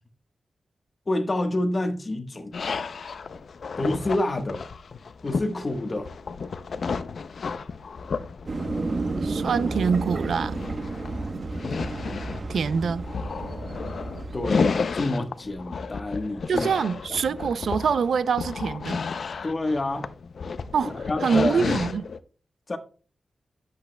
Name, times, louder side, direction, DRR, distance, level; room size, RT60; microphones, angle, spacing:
voice 1, 1.1-2.6 3.8-4.6 5.2-6.1 14.3-16.7 17.2-17.4 19.4-20.1 20.8-21.7 22.7-22.8, left 2 dB, 35° left, 1.2 m, -28 dB
sound 1, 2.5-22.2, left 5 dB, 70° left, 0.5 m, -32 dB
sound 2, 8.5-14.8, right 2 dB, 45° right, 1.0 m, -31 dB
voice 2, 9.2-10.6 12.5-13.0 16.5-19.0 20.7-22.0, right 6 dB, 80° right, 0.4 m, -25 dB
10.5 x 7.7 x 2.2 m
cardioid pair, 75°, 0 cm